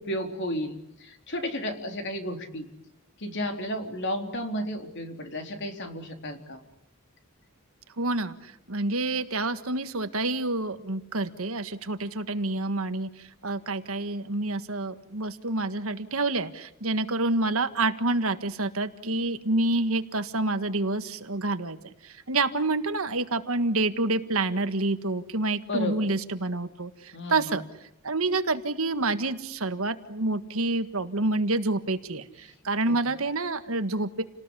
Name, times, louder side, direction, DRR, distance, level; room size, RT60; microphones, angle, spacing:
voice 1, 0.0-2.7 3.2-6.6 25.7-26.1 27.1-27.5 32.9-33.0, equal, 50° left, 5 dB, 3.8 m, -33 dB
voice 2, 8.0-13.1 13.4-21.8 22.0-27.6 28.0-34.2, right 2 dB, 65° right, 10 dB, 1.7 m, -28 dB
30.0 x 19.0 x 9.9 m, 0.81 s
head